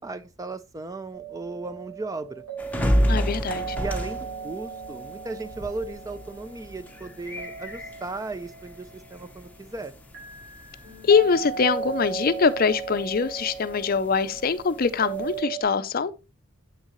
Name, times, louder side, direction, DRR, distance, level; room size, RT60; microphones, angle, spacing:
voice 1, 0.0-2.4 3.8-9.9, right 3 dB, 15° right, 0.3 m, -36 dB
sound 1, 1.1-15.6, right 6 dB, 80° right, 4.2 m, -37 dB
sound 2, 2.6-15.4, equal, 5° left, 0.7 m, -32 dB
voice 2, 3.1-3.8 11.0-16.1, left 5 dB, 40° left, 0.5 m, -23 dB
8.2 x 6.4 x 3.0 m
head